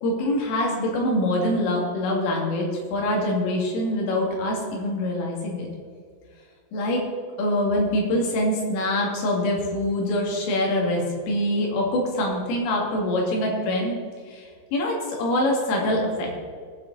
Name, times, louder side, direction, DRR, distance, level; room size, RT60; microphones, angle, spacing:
voice 1, 0.0-5.7 6.7-7.0 7.4-13.9 14.3-16.4, left 1 dB, 80° left, -1 dB, 5.0 m, -24 dB
19.0 x 7.5 x 4.1 m, 2.1 s
omnidirectional pair, 5.7 m